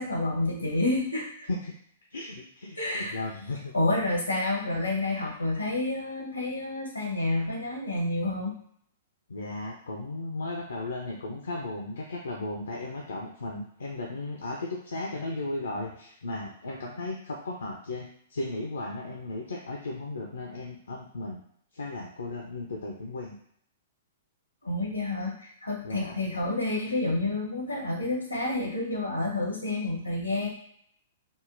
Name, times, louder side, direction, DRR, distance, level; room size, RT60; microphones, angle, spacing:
voice 1, 0.0-1.5 2.8-3.1 3.7-8.6 24.6-30.5, left 2 dB, 90° left, -1 dB, 0.9 m, -29 dB
voice 2, 2.1-3.7 9.3-21.4 21.7-23.3 25.8-26.1, left 2 dB, 75° left, -1 dB, 0.5 m, -35 dB
3.6 x 2.0 x 2.5 m, 0.66 s
figure-of-eight pair, 110°, 0 cm